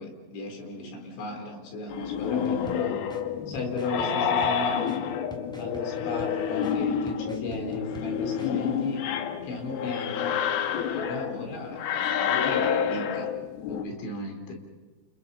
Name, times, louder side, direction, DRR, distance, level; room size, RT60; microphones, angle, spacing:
voice 1, 0.0-3.0 3.5-4.8 5.6-9.0 9.4-10.4 10.7-13.3 13.7-14.5, left 2 dB, 85° left, 3 dB, 6.4 m, -35 dB
sound 1, 1.9-13.8, left 8 dB, 70° left, 2.9 m, -29 dB
sound 2, 2.4-8.5, right 1 dB, ahead, 1.7 m, -47 dB
29.5 x 29.0 x 5.6 m, 1.3 s
omnidirectional pair, 5.1 m